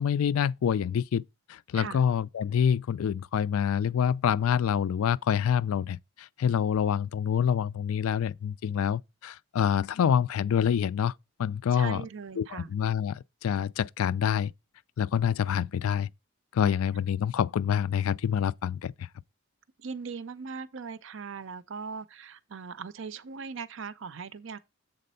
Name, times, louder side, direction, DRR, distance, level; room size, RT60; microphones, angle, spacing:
voice 1, 0.0-11.1 11.4-12.0 12.4-14.5 15.0-16.1 16.5-19.1, left 8 dB, 75° left, 0.3 m, -27 dB
voice 2, 11.7-12.7 19.8-24.6, right 5 dB, 60° right, 0.5 m, -39 dB
7.6 x 4.1 x 5.4 m
head